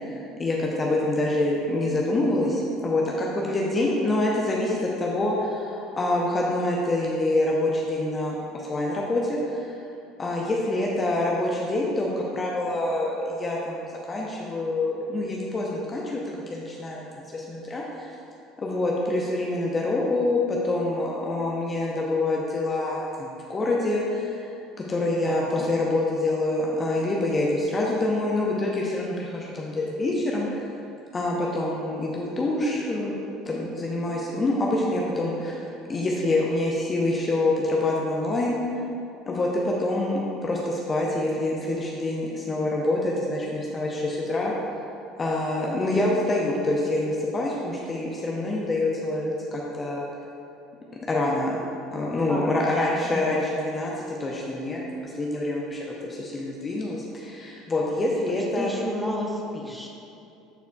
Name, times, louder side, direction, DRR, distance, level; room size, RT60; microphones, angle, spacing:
voice 1, 0.0-9.8 10.2-16.2 16.5-18.1 18.6-24.4 24.9-30.7 31.1-38.6 39.3-44.5 45.2-50.0 51.1-51.6 51.9-58.7, left 2 dB, 25° left, -3 dB, 0.8 m, -26 dB
voice 2, 25.2-25.6 52.3-53.4 58.3-59.9, equal, 5° right, -2 dB, 1.1 m, -32 dB
11.0 x 4.6 x 2.3 m, 2.7 s
figure-of-eight pair, 60°, 0 cm